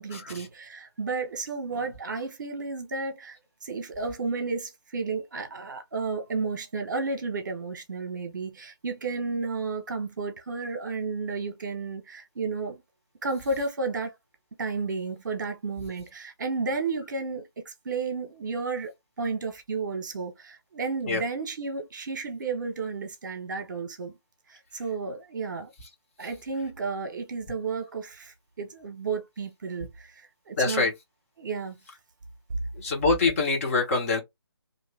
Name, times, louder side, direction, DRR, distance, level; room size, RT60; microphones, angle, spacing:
voice 1, 0.0-12.8 13.2-14.1 14.6-18.9 19.2-24.1 24.5-25.7 26.2-30.9 31.4-31.8, right 4 dB, 45° right, 1.0 m, -32 dB
voice 2, 30.6-30.9 32.8-34.2, left 3 dB, 30° left, 1.2 m, -24 dB
3.1 x 2.7 x 3.3 m
figure-of-eight pair, 150°, 14 cm